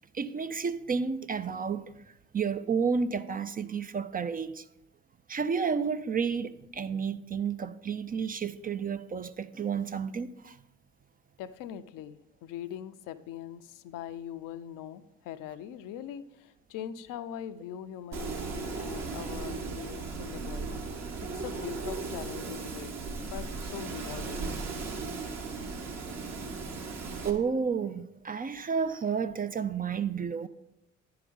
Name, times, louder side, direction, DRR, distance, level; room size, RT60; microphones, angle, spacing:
voice 1, 0.1-1.8 2.3-4.6 5.3-10.5 27.2-30.5, right 6 dB, 25° right, 0.4 m, -31 dB
voice 2, 11.4-20.7 21.2-22.9 23.3-24.4, left 10 dB, 65° left, 0.6 m, -42 dB
Wind, 18.1-27.3, right 4 dB, 50° right, 1.3 m, -36 dB
9.8 x 4.7 x 5.3 m
hypercardioid pair, 45°, 34 cm